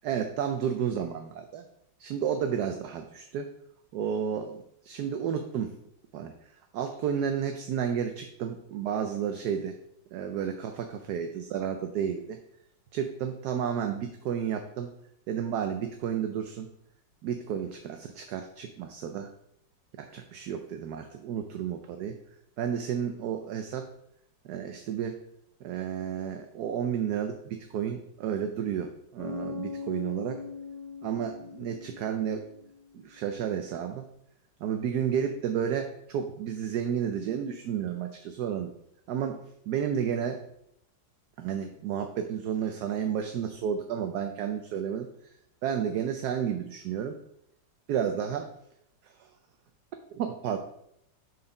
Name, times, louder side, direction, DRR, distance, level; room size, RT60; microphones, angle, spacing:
voice 1, 0.0-1.6 2.0-3.5 3.9-5.7 6.1-6.3 6.7-9.7 10.1-12.4 12.9-14.9 15.3-16.7 17.2-19.3 20.0-22.2 22.6-23.9 24.4-25.2 25.6-30.4 31.0-32.4 32.9-34.1 34.6-38.7 39.1-39.4 39.7-40.4 41.4-45.1 45.6-47.2 47.9-48.5 49.0-49.3 50.1-50.6, right 8 dB, 70° right, 6 dB, 1.0 m, -31 dB
Bass guitar, 29.2-32.8, left 5 dB, 10° left, 1.8 m, -40 dB
6.7 x 4.2 x 5.1 m, 0.77 s
omnidirectional pair, 2.0 m